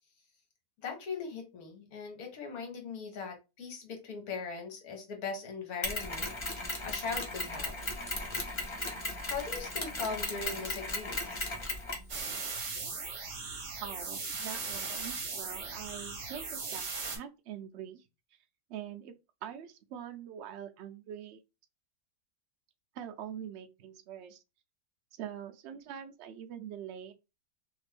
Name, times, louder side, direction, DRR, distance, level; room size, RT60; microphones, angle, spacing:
voice 1, 0.8-7.9 9.2-11.5, left 5 dB, 65° left, 1.4 m, -40 dB
Mechanisms, 5.8-12.1, left 2 dB, 50° left, 0.3 m, -36 dB
sound 1, 12.1-17.2, right 4 dB, 50° right, 1.1 m, -38 dB
voice 2, 13.8-18.0 18.7-19.1 19.4-21.4 22.9-24.4 25.2-27.1, right 9 dB, 85° right, 0.6 m, -44 dB
2.9 x 2.5 x 3.3 m
omnidirectional pair, 1.7 m